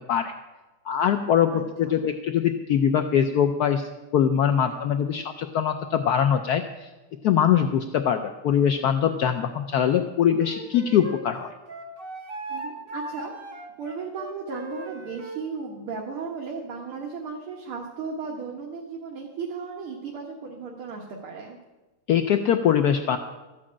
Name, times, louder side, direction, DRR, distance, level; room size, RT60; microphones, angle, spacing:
voice 1, 0.9-6.9 7.2-11.5 22.1-23.2, left 9 dB, 75° left, 7 dB, 0.9 m, -22 dB
voice 2, 1.5-2.0 4.5-4.8 12.5-13.3 13.8-21.6, right 5 dB, 80° right, -1 dB, 2.3 m, -35 dB
Wind instrument woodwind instrument, 10.4-15.4, right 1 dB, 30° right, 1.4 m, -38 dB
14.0 x 6.3 x 8.7 m, 1.1 s
omnidirectional pair, 2.3 m